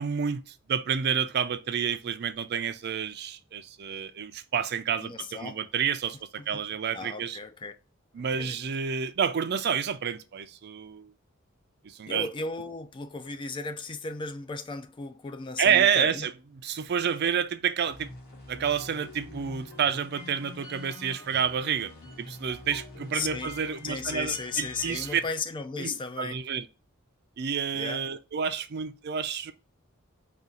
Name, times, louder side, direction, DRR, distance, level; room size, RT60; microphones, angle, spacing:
voice 1, 0.0-7.4 8.1-11.1 11.8-12.3 15.6-16.3 16.6-18.1 18.5-21.9 22.2-25.2 25.8-26.7 27.4-29.5, right 7 dB, 55° right, 0.4 m, -29 dB
voice 2, 5.0-5.6 6.4-6.5 6.9-7.7 8.4-8.6 12.1-16.3 23.1-23.5 23.8-26.4 27.7-28.0, left 4 dB, 25° left, 0.4 m, -35 dB
sound 1, 17.9-25.2, left 2 dB, 55° left, 1.6 m, -45 dB
4.1 x 2.4 x 3.7 m
head